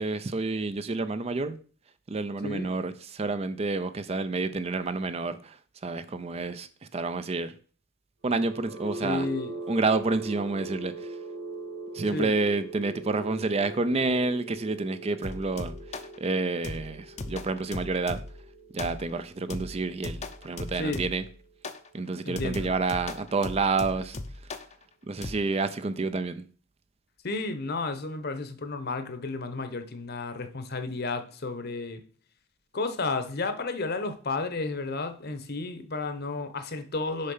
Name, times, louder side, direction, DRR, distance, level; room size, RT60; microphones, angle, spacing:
voice 1, 0.0-1.6 2.1-7.5 8.2-9.3 9.7-11.2 11.9-18.2 18.7-21.3 21.9-24.2 24.4-24.6 25.0-26.5, right 3 dB, 30° right, 0.4 m, -29 dB
voice 2, 2.4-2.7 9.0-9.5 12.1-12.3 20.8-21.0 22.2-22.7 27.2-32.0 32.7-37.3, left 3 dB, 50° left, 0.9 m, -32 dB
sound 1, 8.3-22.2, right 2 dB, 70° right, 1.7 m, -42 dB
sound 2, 15.2-16.2 16.6-18.4 18.8-19.2 19.5-21.3 21.6-21.9 22.4-24.7 25.2-25.4, left 2 dB, 35° left, 0.6 m, -38 dB
6.7 x 5.5 x 5.5 m
head